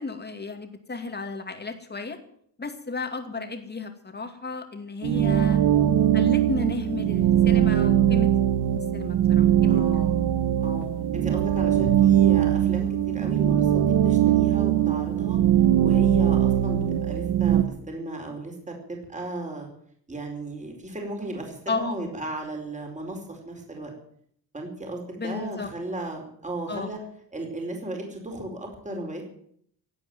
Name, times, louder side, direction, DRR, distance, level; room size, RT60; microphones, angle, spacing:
voice 1, 0.0-2.2 2.6-5.6 6.1-8.3 8.9-9.9 21.7-22.0 25.2-25.7 26.7-26.9, left 4 dB, 25° left, 7 dB, 2.5 m, -33 dB
sound 1, 5.0-17.6, right 10 dB, 70° right, 1.2 m, -21 dB
voice 2, 5.3-5.6 9.7-10.2 10.6-15.4 15.8-17.6 17.9-19.7 20.1-23.9 24.5-27.0 27.3-29.2, right 1 dB, 15° right, 2 dB, 4.8 m, -35 dB
17.0 x 9.1 x 9.3 m, 0.65 s
cardioid pair, 125°, 42 cm